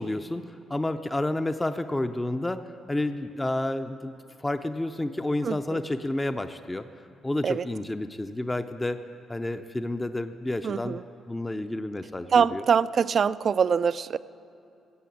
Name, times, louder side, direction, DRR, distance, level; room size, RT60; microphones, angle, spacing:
voice 1, 0.0-2.6 2.9-4.1 4.4-6.9 7.2-9.0 9.3-11.0 11.3-12.6, left 1 dB, 15° left, 8 dB, 0.5 m, -30 dB
voice 2, 5.4-5.8 7.4-7.7 10.6-11.0 12.3-14.2, right 6 dB, 50° right, 16 dB, 0.3 m, -24 dB
15.0 x 8.4 x 8.4 m, 2.7 s
cardioid pair, 90°, 0 cm